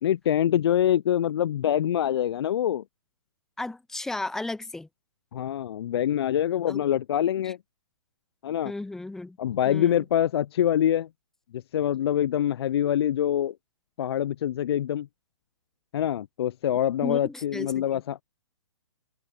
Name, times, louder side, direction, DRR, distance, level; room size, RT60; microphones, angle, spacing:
voice 1, 0.0-2.8 5.3-7.6 8.4-8.7 9.4-11.1 11.5-13.6 14.0-15.1 15.9-18.2, left 10 dB, 55° left, 0.4 m, -25 dB
voice 2, 3.6-4.9 6.7-6.8 8.6-9.4 9.7-10.0 17.0-17.8, left 2 dB, 5° left, 0.5 m, -34 dB
hypercardioid pair, 135°, 16 cm